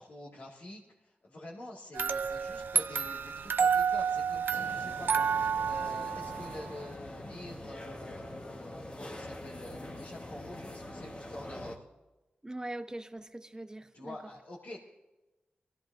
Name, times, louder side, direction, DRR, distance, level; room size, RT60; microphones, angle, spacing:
voice 1, 0.0-11.8 13.9-14.8, left 1 dB, 75° left, 2.2 m, -47 dB
sound 1, 1.9-7.0, right 6 dB, 75° right, 0.4 m, -30 dB
sound 2, 4.5-11.8, left 1 dB, 35° left, 1.5 m, -44 dB
voice 2, 12.4-14.2, right 1 dB, 20° right, 1.0 m, -41 dB
22.0 x 15.5 x 2.7 m
cardioid pair, 50°, 3 cm